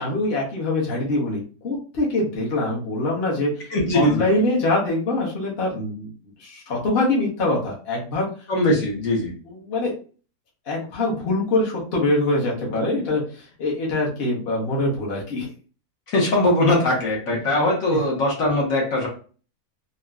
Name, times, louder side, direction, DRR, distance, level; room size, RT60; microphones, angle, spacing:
voice 1, 0.0-3.7 3.9-6.1 6.4-8.3 9.4-9.9 10.7-15.5, left 2 dB, 45° left, -3 dB, 1.0 m, -24 dB
voice 2, 3.7-4.3 8.5-9.3 16.1-19.1, left 1 dB, 65° left, -3 dB, 1.3 m, -20 dB
3.9 x 2.1 x 2.3 m, 0.39 s
omnidirectional pair, 1.6 m